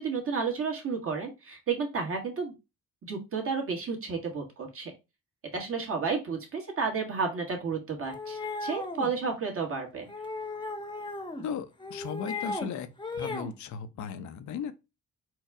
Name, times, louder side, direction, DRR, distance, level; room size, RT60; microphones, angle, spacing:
voice 1, 0.0-2.5 3.1-4.9 5.5-10.1, right 5 dB, 45° right, 1.8 m, -32 dB
sound 1, 8.0-9.1 10.1-11.4 11.8-12.7 13.0-13.5, left 3 dB, 15° left, 0.9 m, -36 dB
voice 2, 11.4-12.9 13.2-14.7, left 7 dB, 70° left, 0.7 m, -36 dB
4.6 x 2.3 x 4.8 m
cardioid pair, 90°, 30 cm